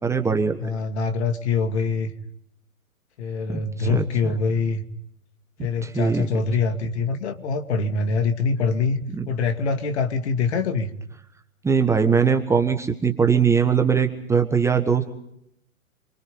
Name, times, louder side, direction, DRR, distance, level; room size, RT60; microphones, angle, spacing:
voice 1, 0.0-0.6 3.5-4.0 5.6-6.3 9.1-9.3 11.6-15.1, right 6 dB, 5° right, 5 dB, 1.4 m, -21 dB
voice 2, 0.6-2.1 3.2-4.8 5.6-9.0 9.3-10.9, left 4 dB, 50° left, 7 dB, 2.5 m, -24 dB
27.5 x 24.0 x 5.4 m, 0.76 s
figure-of-eight pair, 115°, 42 cm